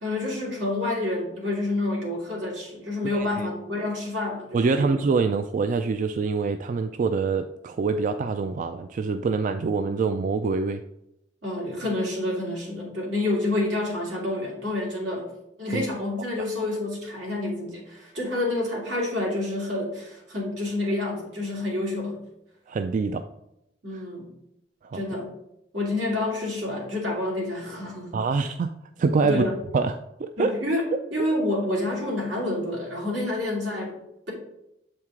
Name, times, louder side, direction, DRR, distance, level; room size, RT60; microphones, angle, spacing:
voice 1, 0.0-4.9 11.4-15.3 15.6-22.2 23.8-24.3 24.9-25.3 25.7-28.2 29.2-29.6 30.4-34.0, left 2 dB, 80° right, -3 dB, 2.4 m, -28 dB
voice 2, 3.1-3.5 4.5-10.8 15.7-15.8 22.7-23.2 24.8-25.0 28.1-28.7 29.0-29.4 29.7-29.9 30.2-30.5, right 4 dB, 45° right, 8 dB, 0.3 m, -25 dB
7.4 x 4.6 x 3.6 m, 0.83 s
head